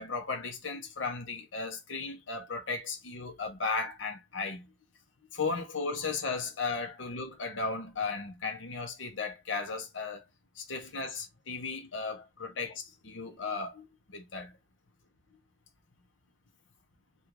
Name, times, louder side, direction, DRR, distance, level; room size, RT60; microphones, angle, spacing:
voice 1, 0.0-4.7 5.3-10.2 10.6-14.5, left 4 dB, 80° left, 0.9 m, -35 dB
3.7 x 2.5 x 3.0 m
head